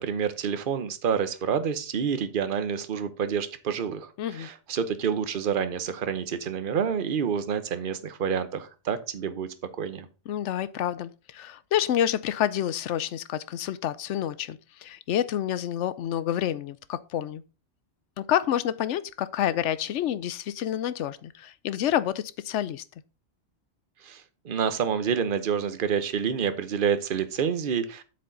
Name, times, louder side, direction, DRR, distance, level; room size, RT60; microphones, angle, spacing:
voice 1, 0.0-9.5 9.8-10.1 24.0-28.0, right 7 dB, 50° right, 1.0 m, -28 dB
voice 2, 4.2-4.5 10.3-17.4 18.2-22.8, left 10 dB, 80° left, 0.9 m, -28 dB
7.9 x 6.7 x 3.9 m
omnidirectional pair, 1.2 m